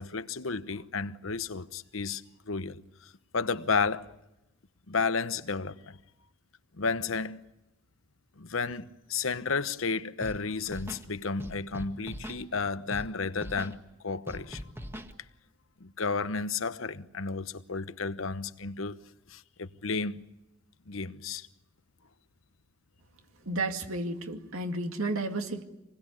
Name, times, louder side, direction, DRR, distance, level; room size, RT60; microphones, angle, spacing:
voice 1, 0.0-4.1 4.9-6.0 6.8-7.4 8.4-13.8 14.0-14.7 15.8-19.0 19.3-20.2 20.9-21.5, left 4 dB, 70° left, 1.0 m, -32 dB
Scratching (performance technique), 10.2-10.4 10.7-11.1 11.4-12.4 12.9-13.1 13.4-13.7 14.3-15.1, equal, 10° right, 1.7 m, -40 dB
voice 2, 23.5-25.6, right 2 dB, 80° right, 2.4 m, -32 dB
27.0 x 21.0 x 9.8 m
head